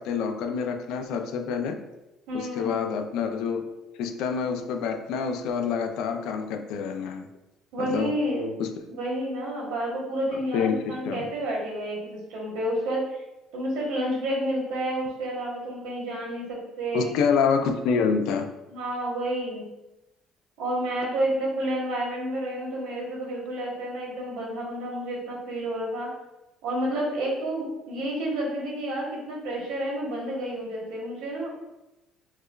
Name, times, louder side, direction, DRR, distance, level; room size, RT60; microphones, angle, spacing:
voice 1, 0.0-1.8 2.3-3.6 4.0-7.3 7.8-8.1 8.6-8.7 10.5-11.3 16.9-18.5, left 6 dB, 65° left, 6 dB, 0.3 m, -27 dB
voice 2, 2.3-2.8 7.7-8.5 8.9-13.2 13.5-17.1 18.7-19.7 20.6-26.1 26.6-31.5, right 1 dB, 85° right, -3 dB, 1.1 m, -30 dB
4.7 x 2.2 x 2.4 m, 0.98 s
cardioid pair, 175°, 0 cm